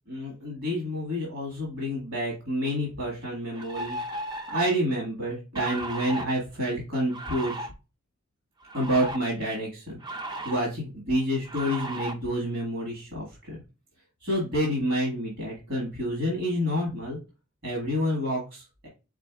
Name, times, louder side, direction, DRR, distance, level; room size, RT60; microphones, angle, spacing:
voice 1, 0.1-4.0 4.5-7.7 8.7-10.0 10.4-13.6 14.2-17.2 17.6-18.9, equal, 65° right, -3 dB, 1.8 m, -28 dB
sound 1, 2.7-2.8 3.5-4.7 5.6-6.2 7.1-7.7 8.6-9.2 10.0-10.6 11.5-12.1, right 1 dB, 20° right, 0.5 m, -35 dB
5.0 x 4.1 x 2.4 m, 0.29 s
head